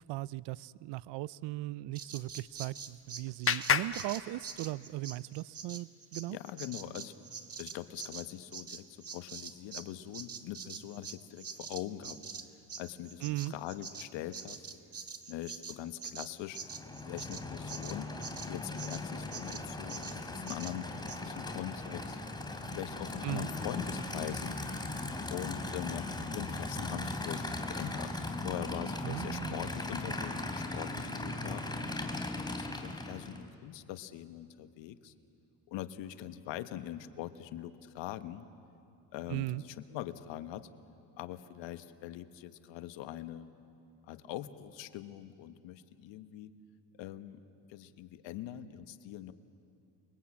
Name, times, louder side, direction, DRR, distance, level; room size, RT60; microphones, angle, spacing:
voice 1, 0.1-6.4 13.2-13.5 23.2-23.5 29.0-29.6 39.3-39.6, right 18 dB, 70° right, 20 dB, 0.6 m, -38 dB
Bird vocalization bird call bird song, 2.0-9.9 10.1-19.0 19.3-19.6 19.9-20.2 20.5-20.8 21.1-21.2, right 6 dB, 30° right, 1.6 m, -45 dB
Clapping, 2.3-5.0, left 7 dB, 30° left, 1.1 m, -34 dB
voice 2, 6.3-7.1 7.6-12.2 12.8-14.7 15.3-16.6 17.1-18.1 18.5-22.2 22.7-24.6 25.3-31.6 32.3-35.1 35.7-38.5 39.1-40.7 41.2-43.5 44.1-46.5 47.0-47.4 47.7-49.3, left 12 dB, 80° left, 10 dB, 1.3 m, -42 dB
Aircraft / Idling, 16.5-33.5, left 2 dB, 10° left, 2.9 m, -38 dB
29.5 x 22.0 x 8.6 m, 2.6 s
cardioid pair, 85°, 44 cm